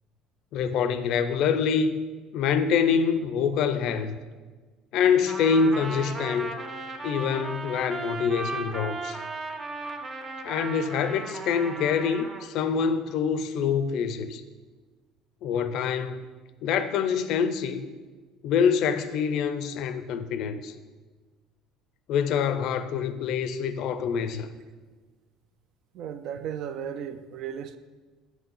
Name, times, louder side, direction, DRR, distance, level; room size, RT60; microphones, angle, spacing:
voice 1, 0.5-2.0 2.3-4.1 4.9-6.6 7.0-9.2 10.4-14.4 15.4-16.2 16.6-17.9 18.4-20.7 22.1-24.5, left 6 dB, 60° left, 0.5 m, -25 dB
Trumpet, 5.3-12.5, right 3 dB, 25° right, 0.7 m, -36 dB
voice 2, 25.9-27.8, right 8 dB, 60° right, 0.4 m, -35 dB
6.2 x 5.6 x 5.4 m
cardioid pair, 135°, 0 cm